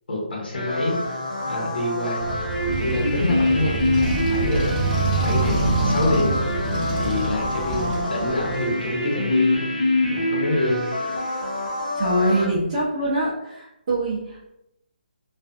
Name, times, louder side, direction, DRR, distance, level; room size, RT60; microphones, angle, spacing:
voice 1, 0.1-1.0 1.5-2.4 2.8-4.8 5.2-6.4 6.9-9.7 10.1-10.8, left 1 dB, 75° left, -3 dB, 1.1 m, -26 dB
sound 1, 0.5-12.5, left 2 dB, 55° left, 0.7 m, -25 dB
Motorcycle, 2.2-8.9, right 3 dB, 15° left, 1.2 m, -26 dB
voice 2, 7.7-8.2 12.0-14.5, right 1 dB, 25° right, -8 dB, 0.5 m, -24 dB
2.5 x 2.4 x 2.4 m, 0.83 s
hypercardioid pair, 180°, 5 cm